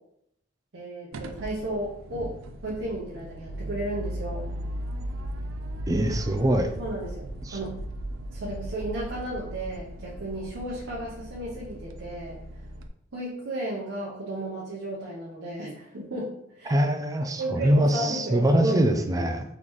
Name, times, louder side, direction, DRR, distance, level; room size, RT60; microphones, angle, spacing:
voice 1, 0.7-2.3 2.6-4.4 6.8-7.8 8.3-12.4 13.1-16.8 17.4-19.3, right 1 dB, 70° right, -5 dB, 0.9 m, -33 dB
sound 1, 1.1-12.9, equal, 85° right, 0.4 m, -37 dB
voice 2, 5.9-6.7 7.4-7.6 16.7-19.4, right 1 dB, 15° right, 5 dB, 0.4 m, -23 dB
3.9 x 3.7 x 3.1 m, 0.77 s
head